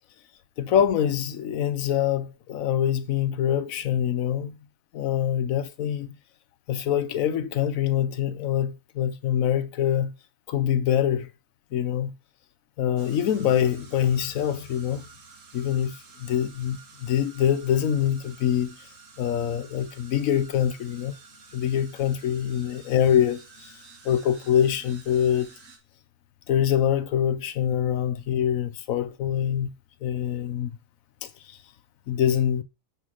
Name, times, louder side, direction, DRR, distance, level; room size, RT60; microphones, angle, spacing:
voice 1, 0.6-4.6 4.9-6.1 6.7-10.1 10.5-11.3 11.7-12.1 12.8-15.1 15.5-18.8 19.2-21.1 21.5-23.4 24.0-25.5 26.5-29.7 30.0-30.8 31.2-31.6 32.1-32.6, left 9 dB, 80° left, 1.1 m, -25 dB
sound 1, 13.0-25.8, right 4 dB, 70° right, 1.7 m, -51 dB
5.8 x 4.5 x 6.2 m
omnidirectional pair, 1.4 m